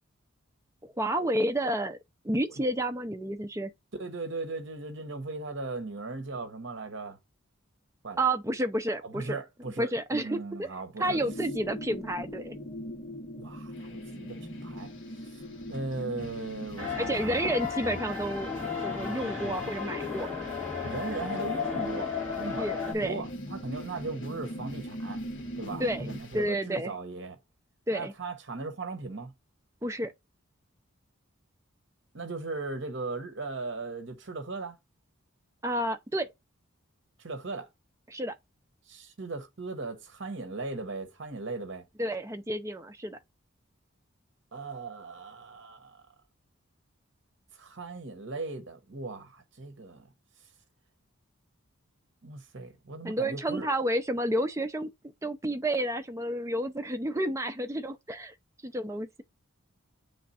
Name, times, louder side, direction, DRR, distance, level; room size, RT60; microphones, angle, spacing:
voice 1, 0.8-2.0 2.2-3.7 8.2-9.4 9.8-10.7 11.0-12.6 17.0-18.5 18.8-20.3 22.6-23.2 25.8-26.1 26.3-26.9 27.9-28.1 29.8-30.1 35.6-36.3 38.1-38.4 42.0-43.2 53.0-54.9 55.2-58.3 58.6-59.2, right 1 dB, 15° right, 0.5 m, -30 dB
voice 2, 3.9-7.2 8.0-8.2 9.0-11.2 13.4-15.4 15.7-17.5 20.8-25.2 25.6-27.4 27.9-29.3 32.1-34.8 37.2-37.7 38.9-41.9 44.5-46.1 47.5-50.1 52.2-53.7, right 3 dB, 60° right, 0.9 m, -38 dB
sound 1, 11.0-26.2, equal, 40° left, 1.1 m, -41 dB
sound 2, 13.7-26.5, left 2 dB, 60° left, 1.6 m, -49 dB
sound 3, 16.8-22.9, left 5 dB, 10° left, 3.0 m, -34 dB
8.7 x 3.4 x 4.1 m
head